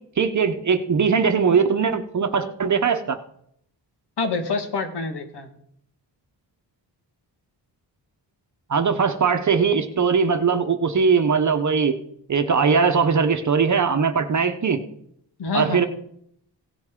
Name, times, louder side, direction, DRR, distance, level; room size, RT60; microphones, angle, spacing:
voice 1, 0.2-3.2 8.7-12.0 12.3-14.8 15.5-15.9, right 5 dB, 45° right, 7 dB, 0.9 m, -20 dB
voice 2, 4.2-5.5 15.4-15.9, left 4 dB, 65° left, 6 dB, 1.8 m, -26 dB
16.5 x 7.6 x 3.8 m, 0.70 s
wide cardioid pair, 105°, 42 cm